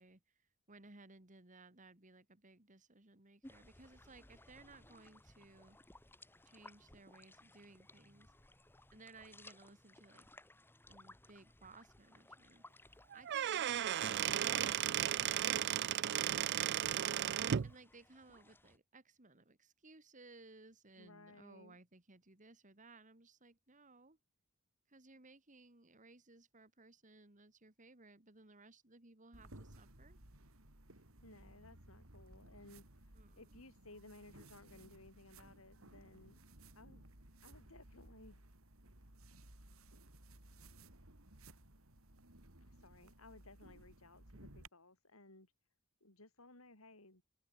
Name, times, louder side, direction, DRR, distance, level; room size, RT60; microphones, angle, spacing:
voice 1, 0.0-5.8 6.4-8.5 8.9-10.3 10.9-16.8 17.6-24.2 24.9-30.2 33.2-33.5, right 3 dB, 35° right, 2.5 m, -61 dB
sound 1, 3.4-18.8, left 2 dB, 10° left, 1.5 m, -61 dB
Squeak / Wood, 13.1-17.7, right 10 dB, 55° right, 0.4 m, -35 dB
voice 2, 21.0-21.8 30.9-36.4 36.7-37.1 37.4-38.4 42.6-45.5 46.0-47.2, left 2 dB, 80° left, 5.9 m, -59 dB
sound 2, 29.3-44.7, right 1 dB, 75° right, 4.4 m, -59 dB
open air
head